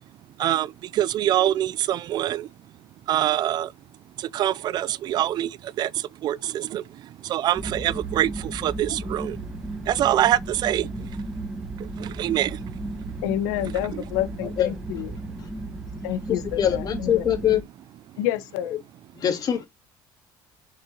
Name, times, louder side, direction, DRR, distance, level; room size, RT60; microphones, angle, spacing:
voice 1, 0.4-2.5 3.1-3.7 4.2-11.2 11.5-13.2 13.9-14.0 15.2-15.3, right 12 dB, 55° right, 0.5 m, -25 dB
sound 1, 7.6-17.6, right 2 dB, 5° right, 1.6 m, -35 dB
voice 2, 13.2-15.2 16.0-17.2 18.2-18.8, left 13 dB, 90° left, 1.2 m, -28 dB
voice 3, 16.3-17.6 19.1-19.7, left 9 dB, 50° left, 2.9 m, -23 dB
7.0 x 5.5 x 2.9 m
supercardioid pair, 95°, 9 cm